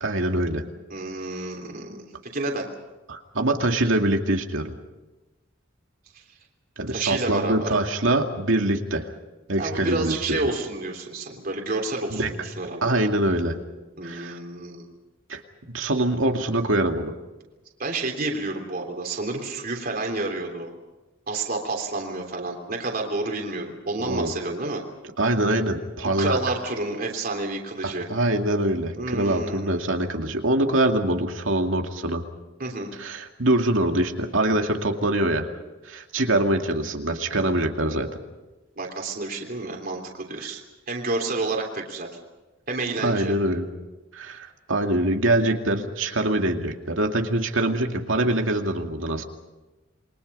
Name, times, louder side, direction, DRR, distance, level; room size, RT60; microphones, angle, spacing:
voice 1, 0.0-0.6 3.1-4.7 6.8-9.1 9.5-10.4 12.1-12.3 12.8-13.5 14.0-14.4 15.3-15.4 15.7-17.1 24.1-24.3 25.2-26.4 27.8-32.2 33.0-35.5 35.8-38.1 40.4-40.5 43.0-43.7 44.1-49.2, right 1 dB, 75° right, 4 dB, 2.4 m, -24 dB
voice 2, 0.9-2.0 2.3-2.7 6.1-6.2 6.9-7.7 9.6-12.8 14.0-14.8 17.8-20.7 21.3-24.8 26.2-28.1 29.0-29.8 32.6-32.9 38.8-40.6 40.9-42.1 42.7-43.3, right 2 dB, 50° right, 1 dB, 3.2 m, -29 dB
28.5 x 22.5 x 5.5 m, 1.1 s
head